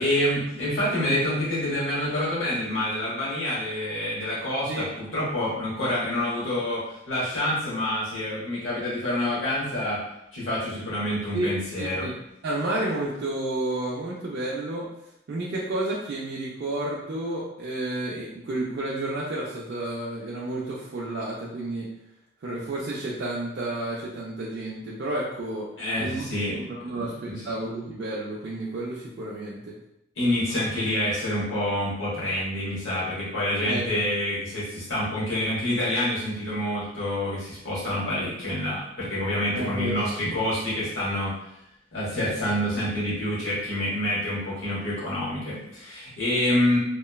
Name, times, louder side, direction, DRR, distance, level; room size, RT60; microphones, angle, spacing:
voice 1, 0.0-10.0 10.3-12.1 25.8-26.6 26.9-27.4 30.2-41.3 41.9-46.8, left 1 dB, 75° left, -8 dB, 1.0 m, -27 dB
voice 2, 11.8-12.1 12.4-14.9 15.3-21.9 22.4-25.7 26.0-26.3 26.5-29.6 33.7-34.0 39.5-40.3, right 2 dB, 60° right, -5 dB, 0.4 m, -31 dB
2.9 x 2.1 x 2.2 m, 0.82 s
head